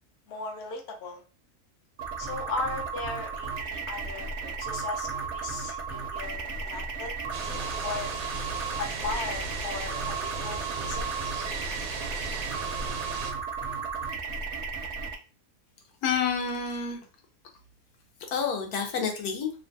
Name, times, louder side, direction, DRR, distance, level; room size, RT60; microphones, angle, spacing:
voice 1, 0.3-1.2 2.2-7.1 7.4-8.1 8.8-11.2, left 3 dB, 55° left, 2 dB, 0.8 m, -37 dB
sound 1, 2.0-15.1, right 5 dB, 70° right, 0.7 m, -34 dB
sound 2, 7.3-13.3, right 4 dB, 90° right, 1.1 m, -36 dB
voice 2, 16.0-17.0 18.3-19.5, left 6 dB, 80° left, 3 dB, 1.2 m, -29 dB
2.9 x 2.2 x 2.5 m, 0.34 s
omnidirectional pair, 1.6 m